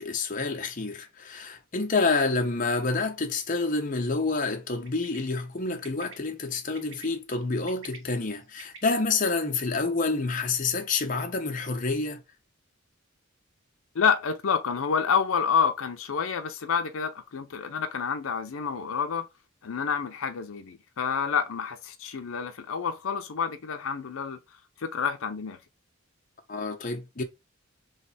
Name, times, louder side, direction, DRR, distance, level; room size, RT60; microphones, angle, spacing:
voice 1, 0.0-12.2 26.5-27.2, left 3 dB, 40° left, 0.8 m, -28 dB
Bird, 4.8-5.2 5.8-6.1 6.7-7.0 7.5-8.9, right 4 dB, 85° right, 1.9 m, -47 dB
voice 2, 13.9-19.3 19.6-24.4 24.8-25.6, left 6 dB, 75° left, 0.5 m, -28 dB
3.3 x 3.3 x 4.1 m
head